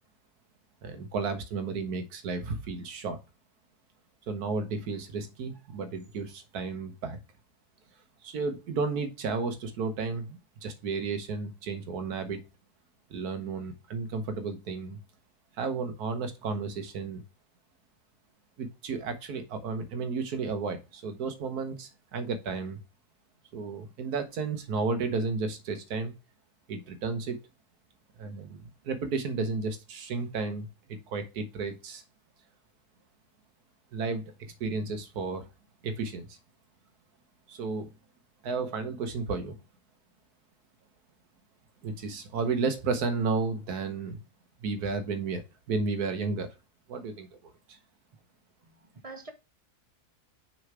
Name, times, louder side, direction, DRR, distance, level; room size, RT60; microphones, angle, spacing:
voice 1, 0.8-3.2 4.3-7.2 8.2-12.4 13.1-15.0 15.6-17.2 18.6-22.8 23.5-26.1 26.7-27.4 28.2-32.0 33.9-35.5 35.8-36.4 37.5-37.9 38.4-39.5 41.8-44.2 44.6-46.5 46.9-47.3, right 4 dB, 75° right, 1.5 m, -33 dB
voice 2, 48.6-49.3, right 3 dB, 45° right, 0.4 m, -45 dB
6.4 x 3.9 x 4.6 m
omnidirectional pair, 1.6 m